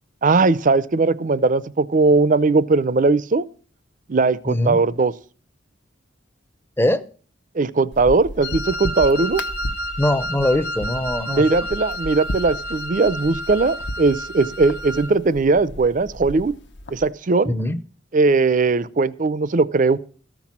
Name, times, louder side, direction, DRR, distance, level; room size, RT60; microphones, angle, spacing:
voice 1, 0.2-3.4 4.1-5.1 7.5-9.4 11.3-16.5 16.9-17.5 18.1-20.0, right 3 dB, 40° right, 0.5 m, -19 dB
voice 2, 4.5-4.8 6.8-7.0 10.0-11.7 17.5-17.8, left 1 dB, 10° left, 0.6 m, -22 dB
sound 1, 7.9-17.1, left 1 dB, 60° left, 0.9 m, -35 dB
Wind instrument woodwind instrument, 8.4-15.1, equal, 75° left, 1.4 m, -31 dB
14.0 x 6.0 x 7.3 m
head